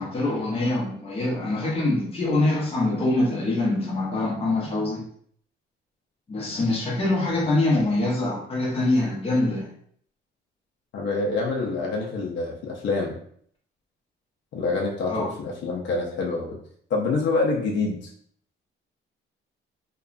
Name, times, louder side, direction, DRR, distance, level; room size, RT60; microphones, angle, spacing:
voice 1, 0.0-5.0 6.3-9.7 15.1-15.3, left 2 dB, 30° left, -4 dB, 0.8 m, -24 dB
voice 2, 10.9-13.2 14.5-16.6 16.9-18.1, left 3 dB, 60° left, -1 dB, 0.5 m, -26 dB
2.9 x 2.3 x 2.4 m, 0.62 s
cardioid pair, 160°, 21 cm